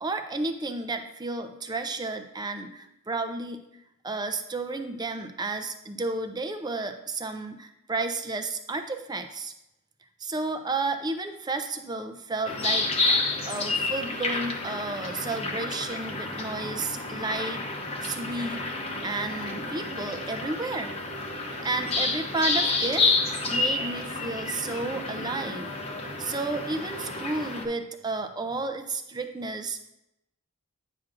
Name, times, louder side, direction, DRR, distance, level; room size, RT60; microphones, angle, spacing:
voice 1, 0.0-3.6 4.0-9.5 10.2-12.9 13.5-17.6 18.0-18.6 19.0-21.0 21.6-23.1 23.5-25.7 26.2-29.9, right 3 dB, 20° right, 7 dB, 0.5 m, -32 dB
sound 1, 12.5-27.6, left 3 dB, 30° left, 0.8 m, -30 dB
8.8 x 5.9 x 2.5 m, 0.86 s
head